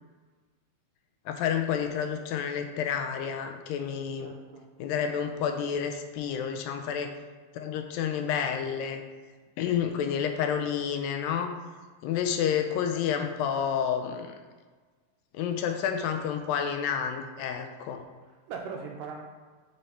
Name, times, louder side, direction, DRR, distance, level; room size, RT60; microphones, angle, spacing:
voice 1, 1.3-4.3 4.8-7.1 7.5-9.0 9.6-11.5 12.0-14.4 15.3-18.0, left 8 dB, 80° left, 6 dB, 2.2 m, -29 dB
voice 2, 4.2-4.7 12.7-12.9 18.3-19.2, right 5 dB, 80° right, 1 dB, 2.0 m, -40 dB
8.7 x 4.2 x 4.3 m, 1.4 s
omnidirectional pair, 4.2 m